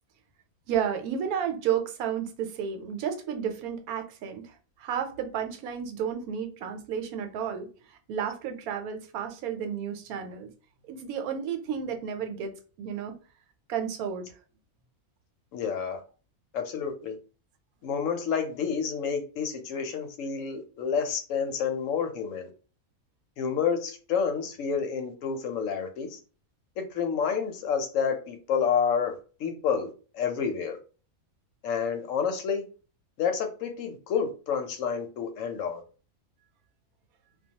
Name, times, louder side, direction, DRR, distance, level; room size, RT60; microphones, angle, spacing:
voice 1, 0.7-10.5 10.9-12.5 12.8-13.2 13.7-14.3, right 8 dB, 85° right, 1.0 m, -32 dB
voice 2, 15.5-16.0 16.5-17.2 17.8-22.5 23.4-26.2 26.8-30.8 31.6-32.6 33.2-35.8, left 6 dB, 70° left, 0.9 m, -29 dB
2.2 x 2.2 x 2.7 m
omnidirectional pair, 1.5 m